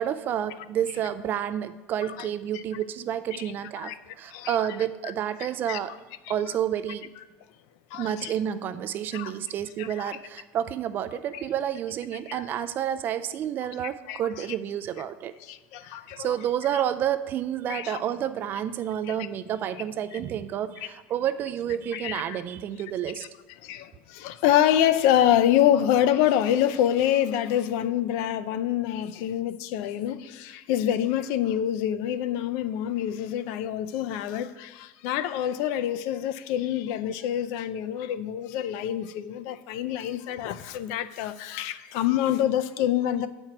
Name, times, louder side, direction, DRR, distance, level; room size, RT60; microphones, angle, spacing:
voice 1, 0.0-5.9 6.3-7.1 7.9-15.3 16.2-23.3, right 10 dB, 35° right, 11 dB, 0.3 m, -30 dB
voice 2, 3.8-4.7 5.7-5.8 6.3-6.4 7.9-8.3 9.1-9.3 9.8-10.2 11.3-11.4 12.3-12.4 14.1-14.5 15.4-16.3 17.7-18.0 19.2-19.3 20.1-20.2 21.9-22.4 23.6-43.3, left 11 dB, 65° left, 12 dB, 0.5 m, -26 dB
8.7 x 4.4 x 5.9 m, 1.1 s
cardioid pair, 150°, 6 cm